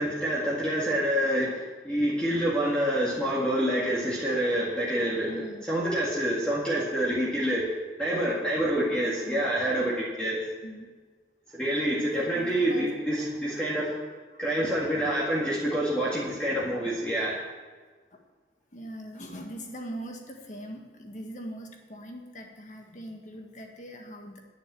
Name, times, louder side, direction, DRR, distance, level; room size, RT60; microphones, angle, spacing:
voice 1, 0.0-7.6 8.0-10.4 11.5-13.9 14.4-17.3, right 1 dB, 5° left, -7 dB, 2.0 m, -27 dB
voice 2, 5.3-5.6 9.3-9.4 10.6-10.9 12.3-12.9 14.3-14.4 15.3-15.4 18.7-24.4, right 1 dB, 45° left, 2 dB, 1.7 m, -41 dB
10.5 x 8.7 x 7.6 m, 1.4 s
head